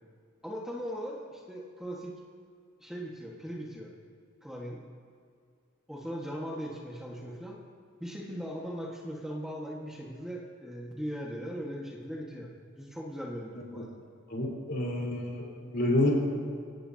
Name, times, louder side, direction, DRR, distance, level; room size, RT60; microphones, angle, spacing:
voice 1, 0.4-2.1 2.8-3.9 4.4-4.8 5.9-7.6 8.0-12.5 12.8-14.0, equal, 5° right, -3 dB, 1.6 m, -39 dB
voice 2, 14.3-16.1, left 1 dB, 55° left, -3 dB, 4.3 m, -29 dB
25.0 x 17.5 x 2.9 m, 2.3 s
head